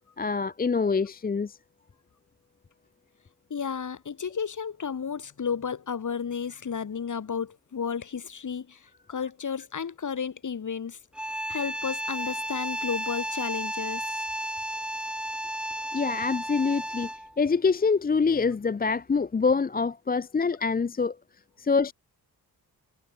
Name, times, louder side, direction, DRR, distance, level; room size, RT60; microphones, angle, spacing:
voice 1, 0.2-1.6 15.9-17.1 17.4-21.2 21.6-21.9, left 5 dB, 25° left, 0.7 m, -25 dB
voice 2, 3.5-11.0 11.5-14.0, left 6 dB, 50° left, 4.0 m, -32 dB
sound 1, 11.1-17.4, equal, ahead, 1.2 m, -33 dB
cardioid pair, 90°, 40 cm